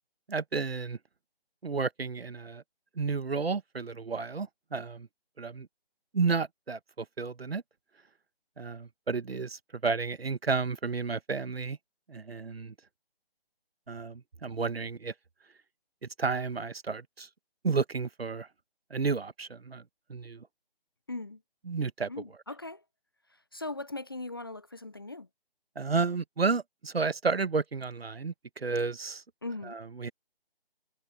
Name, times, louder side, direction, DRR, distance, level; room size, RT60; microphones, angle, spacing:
voice 1, 0.3-1.0 1.6-2.6 2.9-5.1 5.4-5.7 6.1-7.6 8.6-11.8 12.1-12.7 13.9-15.1 16.0-17.3 17.6-18.5 18.9-19.8 20.1-20.5 21.6-22.1 25.7-29.2 29.6-30.1, right 4 dB, 80° right, 1.3 m, -32 dB
voice 2, 21.1-21.4 22.1-22.8 23.5-25.3 29.4-29.8, left 2 dB, 25° left, 0.5 m, -39 dB
figure-of-eight pair, 155°, 30 cm